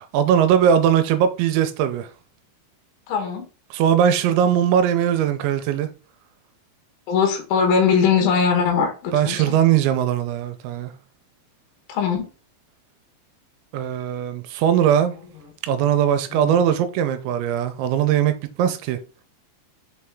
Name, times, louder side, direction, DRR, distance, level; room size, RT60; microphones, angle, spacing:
voice 1, 0.1-2.1 3.7-5.9 9.1-10.9 13.7-15.1 15.6-19.0, right 9 dB, 90° right, 3.0 m, -20 dB
voice 2, 3.1-3.5 7.1-9.6 11.9-12.3 16.3-16.5, left 6 dB, 65° left, 3.0 m, -21 dB
6.5 x 4.3 x 3.6 m
omnidirectional pair, 5.3 m